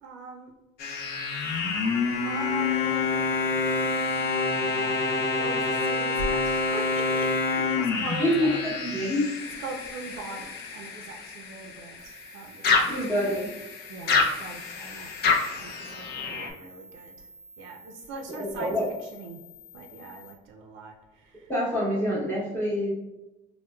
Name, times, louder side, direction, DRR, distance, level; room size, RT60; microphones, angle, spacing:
voice 1, 0.0-0.5 1.3-1.6 2.1-8.6 9.6-12.9 13.9-17.3 17.6-18.7 19.1-19.4 19.7-21.5, right 3 dB, 80° right, 1 dB, 0.4 m, -41 dB
sound 1, 0.8-12.3 12.6-16.5, left 4 dB, 55° left, 0.5 m, -27 dB
voice 2, 8.2-9.3 12.9-13.5 18.4-18.8 21.5-22.9, equal, 10° left, -8 dB, 0.8 m, -26 dB
sound 2, 12.0-20.3, left 2 dB, 80° left, 0.9 m, -50 dB
4.3 x 2.1 x 2.2 m, 1.0 s
cardioid pair, 135°, 20 cm